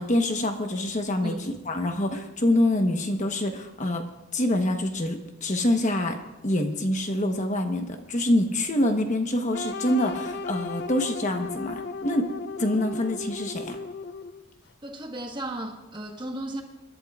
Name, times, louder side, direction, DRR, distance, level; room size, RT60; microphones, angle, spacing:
voice 1, 0.0-1.3 1.7-4.0 4.3-6.2 6.4-12.3 12.6-13.8, left 1 dB, 35° left, 5 dB, 1.1 m, -25 dB
sound 1, 9.5-14.5, left 3 dB, 55° left, 0.5 m, -35 dB
voice 2, 14.8-16.6, right 1 dB, 25° right, 3 dB, 1.3 m, -34 dB
27.0 x 11.5 x 2.4 m, 0.99 s
head